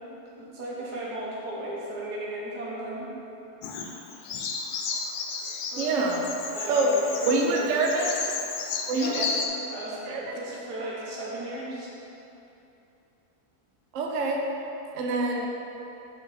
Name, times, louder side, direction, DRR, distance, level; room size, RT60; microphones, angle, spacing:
voice 1, 0.4-3.1 5.7-6.2 6.5-7.8 8.9-9.4 9.6-11.9, right 1 dB, 85° right, -5 dB, 1.7 m, -35 dB
Bird vocalization bird call bird song, 3.6-9.5, left 5 dB, 85° left, 1.1 m, -33 dB
voice 2, 5.8-6.2 6.7-7.0 7.2-8.1 8.9-9.3 10.1-10.3 13.9-14.4 14.9-15.5, right 3 dB, 65° right, 0 dB, 0.8 m, -25 dB
5.0 x 4.6 x 4.1 m, 2.9 s
omnidirectional pair, 1.7 m